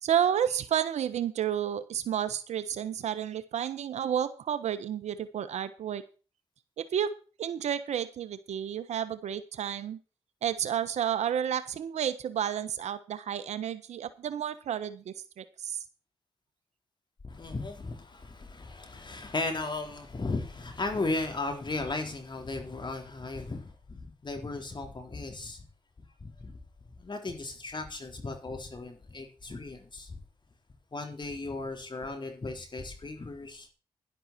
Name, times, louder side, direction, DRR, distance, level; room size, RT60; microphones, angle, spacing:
voice 1, 0.0-6.0 6.8-7.1 7.4-10.0 10.4-15.8, right 9 dB, 80° right, 13 dB, 1.2 m, -31 dB
voice 2, 17.2-25.7 26.2-26.6 27.0-30.2 30.9-33.7, left 3 dB, 40° left, 5 dB, 4.3 m, -36 dB
12.0 x 11.5 x 4.4 m, 0.35 s
supercardioid pair, 45°, 12 cm